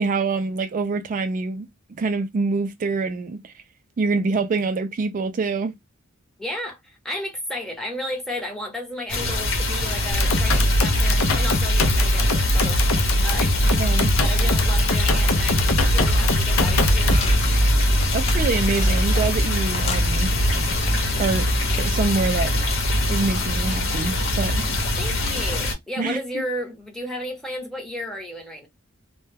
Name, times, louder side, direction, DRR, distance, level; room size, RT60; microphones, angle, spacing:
voice 1, 0.0-1.7 2.0-3.5 4.0-5.7 13.8-14.1 18.1-20.3 21.2-21.5 21.8-22.5 23.1-24.6 26.0-26.2, right 4 dB, 40° right, 0.3 m, -25 dB
voice 2, 6.4-13.9 14.2-18.0 25.0-28.7, left 1 dB, ahead, 0.7 m, -33 dB
sound 1, 9.1-25.7, left 1 dB, 60° left, 0.9 m, -23 dB
sound 2, 10.1-17.3, left 1 dB, 80° left, 0.5 m, -21 dB
sound 3, 16.0-17.6 18.0-19.4 19.7-21.7 22.2-22.4, left 3 dB, 30° left, 0.4 m, -35 dB
2.1 x 2.1 x 3.3 m
head